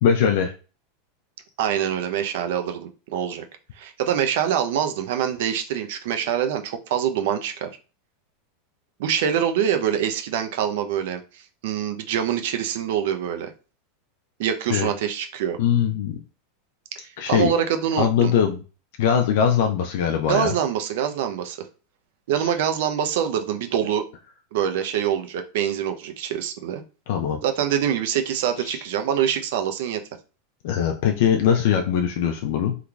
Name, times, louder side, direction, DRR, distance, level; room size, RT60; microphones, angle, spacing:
voice 1, 0.0-0.5 14.7-14.9 15.6-16.2 17.2-17.5 18.0-18.6 19.0-20.5 27.1-27.4 28.6-28.8 30.6-32.8, left 8 dB, 70° left, 3 dB, 0.4 m, -21 dB
voice 2, 1.6-3.4 3.8-7.7 9.0-13.5 14.4-15.6 17.0-18.3 20.2-21.7 22.3-24.0 24.5-26.8 27.4-30.0, right 9 dB, 70° right, 7 dB, 0.6 m, -25 dB
3.7 x 3.0 x 2.3 m, 0.35 s
supercardioid pair, 140°, 0 cm